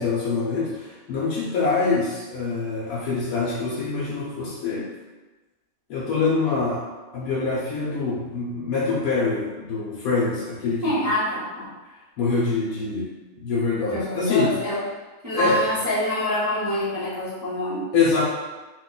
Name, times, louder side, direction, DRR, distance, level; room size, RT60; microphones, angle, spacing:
voice 1, 0.0-4.9 5.9-6.8 7.1-11.0 12.2-13.1 13.4-14.6 15.3-15.6 17.9-18.2, left 4 dB, 80° left, -7 dB, 1.1 m, -24 dB
voice 2, 10.8-11.7 13.8-14.8 15.2-17.9, equal, 15° right, -11 dB, 0.8 m, -26 dB
2.8 x 2.2 x 3.8 m, 1.2 s
omnidirectional pair, 1.5 m